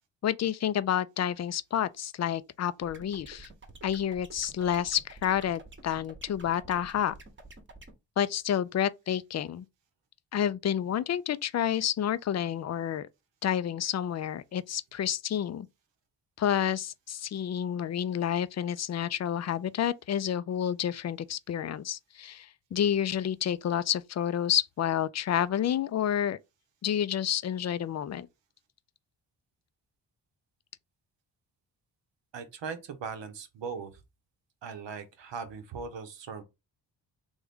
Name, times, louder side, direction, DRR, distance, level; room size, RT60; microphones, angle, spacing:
voice 1, 0.2-3.5 3.8-7.1 8.2-9.6 10.3-13.1 13.4-15.7 16.4-26.4 26.8-28.3, left 10 dB, 40° left, 0.4 m, -29 dB
sound 1, 2.8-7.9, right 3 dB, 25° right, 1.0 m, -49 dB
voice 2, 32.3-33.9 34.6-36.4, right 5 dB, 65° right, 0.9 m, -39 dB
3.5 x 2.6 x 3.5 m
cardioid pair, 55°, 47 cm